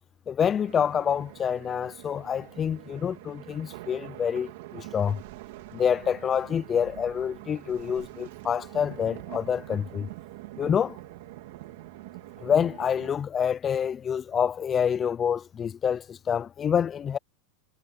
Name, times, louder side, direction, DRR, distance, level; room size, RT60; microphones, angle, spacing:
voice 1, 0.3-5.2 5.7-10.1 10.6-11.0 12.4-17.2, left 8 dB, 25° left, 0.6 m, -27 dB
sound 1, 0.6-13.1, right 20 dB, 70° right, 2.9 m, -44 dB
supercardioid pair, 125°, 0 cm